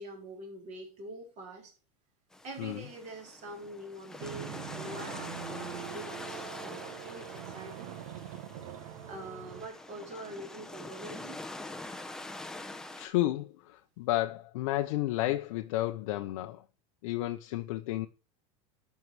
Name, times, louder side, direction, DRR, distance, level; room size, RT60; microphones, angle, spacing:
voice 1, 0.0-1.7 2.4-8.0 9.1-11.4 11.9-12.0, right 1 dB, 40° right, 3.7 m, -45 dB
sound 1, 2.3-13.1, left 2 dB, 5° left, 0.7 m, -45 dB
sound 2, 4.2-9.7, right 9 dB, 80° right, 1.3 m, -43 dB
voice 2, 13.0-16.6 17.0-18.1, left 16 dB, 75° left, 0.7 m, -32 dB
11.0 x 4.7 x 4.6 m
supercardioid pair, 135°, 17 cm